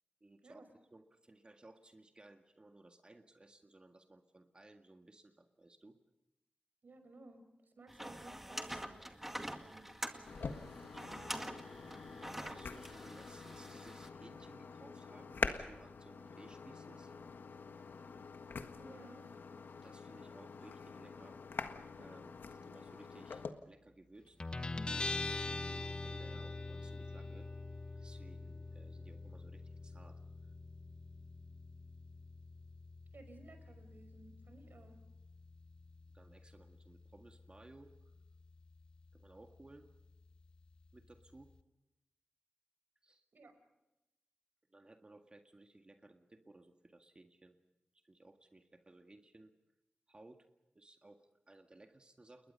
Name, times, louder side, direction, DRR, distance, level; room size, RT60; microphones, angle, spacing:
voice 1, 0.2-0.6 0.9-6.0 11.7-17.1 19.8-21.7 22.0-24.5 24.9-27.5 28.0-30.2 36.1-37.9 39.1-39.9 40.9-41.5 43.0-43.2 44.7-47.6 47.9-49.5 50.1-50.5 50.7-52.5, right 2 dB, 30° right, 5 dB, 1.8 m, -60 dB
voice 2, 6.8-11.4 18.8-19.3 33.1-35.0 43.3-43.6, right 2 dB, 65° right, 7 dB, 5.5 m, -58 dB
sound 1, 7.9-14.1, equal, 5° right, 2.0 m, -46 dB
sound 2, 10.3-23.5, left 5 dB, 85° left, 1.6 m, -45 dB
Guitar, 24.4-41.6, left 2 dB, 25° left, 1.0 m, -46 dB
30.0 x 21.0 x 5.6 m, 0.94 s
wide cardioid pair, 100°, 3 cm